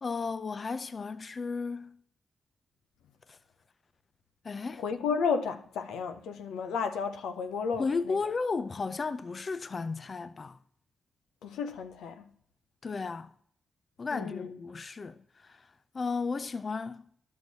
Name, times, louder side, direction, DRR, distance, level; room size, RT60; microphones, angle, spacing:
voice 1, 0.0-2.0 3.3-3.4 4.4-4.8 7.8-10.6 12.8-13.3 14.0-15.7 15.9-17.0, left 4 dB, 50° left, 0.4 m, -34 dB
voice 2, 4.8-8.2 11.4-12.2 14.1-14.6, left 5 dB, 90° left, 0.6 m, -32 dB
11.5 x 6.5 x 4.0 m
supercardioid pair, 55°, 0 cm